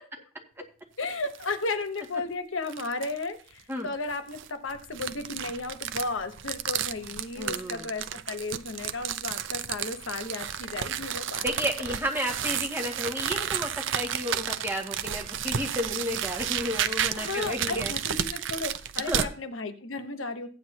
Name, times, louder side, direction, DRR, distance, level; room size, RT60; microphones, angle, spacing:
voice 1, 1.0-11.5 17.2-20.5, left 3 dB, 70° left, 8 dB, 1.1 m, -34 dB
sound 1, 1.0-1.5 2.0-2.1 2.7-3.2 4.1-19.3, right 9 dB, 65° right, 0.6 m, -32 dB
voice 2, 7.4-7.9 11.4-17.9 19.1-19.3, equal, 10° right, 0 dB, 2.1 m, -32 dB
15.5 x 9.4 x 2.9 m, 0.37 s
head